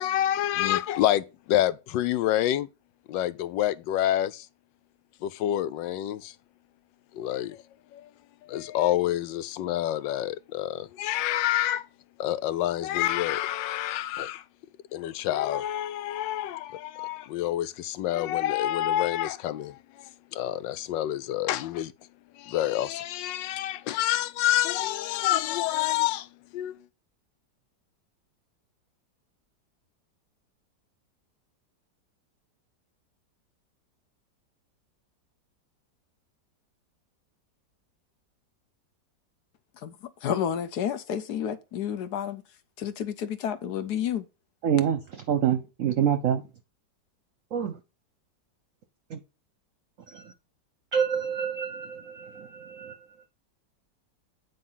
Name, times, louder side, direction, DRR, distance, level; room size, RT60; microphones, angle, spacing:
voice 1, 0.0-2.7 3.1-4.5 5.2-6.3 7.1-7.6 7.9-8.1 8.4-11.9 12.2-14.4 14.9-21.9 22.3-26.8, left 13 dB, 90° left, 1.3 m, -28 dB
voice 2, 40.2-42.4 42.8-44.3, left 9 dB, 70° left, 1.2 m, -30 dB
voice 3, 44.6-46.4 47.5-47.8 49.1-49.2 50.1-50.3 50.9-53.0, right 8 dB, 60° right, 0.9 m, -27 dB
9.1 x 3.7 x 5.6 m
omnidirectional pair, 1.9 m